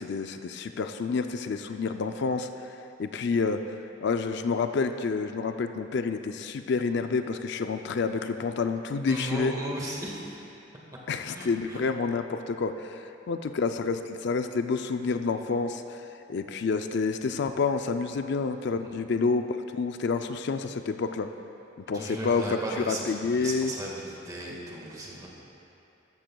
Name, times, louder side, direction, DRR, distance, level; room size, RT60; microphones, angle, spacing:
voice 1, 0.0-9.5 11.1-21.3 21.9-23.7, left 4 dB, 65° left, 8 dB, 0.4 m, -29 dB
voice 2, 9.1-10.4 11.3-11.8 18.8-19.0 21.9-25.3, right 1 dB, 20° right, -3 dB, 1.6 m, -36 dB
13.5 x 13.0 x 2.3 m, 2.9 s
head